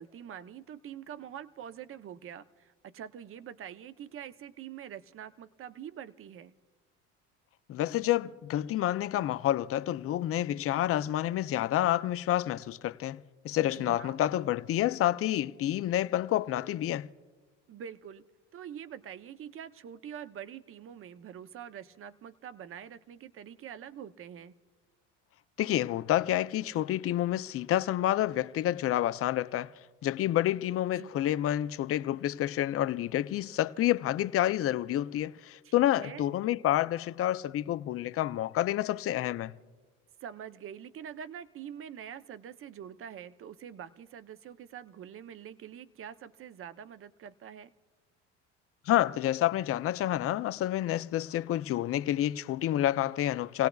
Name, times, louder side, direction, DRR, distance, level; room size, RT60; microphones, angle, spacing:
voice 1, 0.0-6.5 13.6-14.2 17.7-18.2 18.5-24.5 30.9-31.3 35.6-36.3 40.2-47.7, right 9 dB, 40° right, 0.7 m, -45 dB
voice 2, 7.7-17.1 25.6-29.7 30.0-39.5 48.9-53.7, left 13 dB, 40° left, 0.5 m, -29 dB
29.5 x 17.5 x 2.3 m
hypercardioid pair, 80°, 35 cm